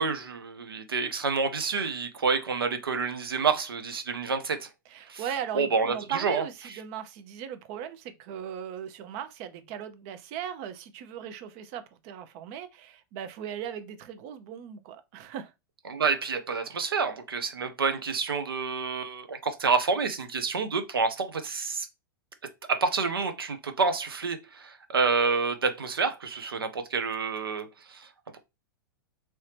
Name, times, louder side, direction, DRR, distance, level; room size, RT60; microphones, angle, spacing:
voice 1, 0.0-4.7 5.1-5.2 5.5-6.4 15.9-21.9 22.7-28.1, right 5 dB, 80° right, 0.7 m, -28 dB
voice 2, 4.9-15.5, right 9 dB, 40° right, 0.6 m, -38 dB
3.1 x 2.7 x 3.3 m
figure-of-eight pair, 100°, 12 cm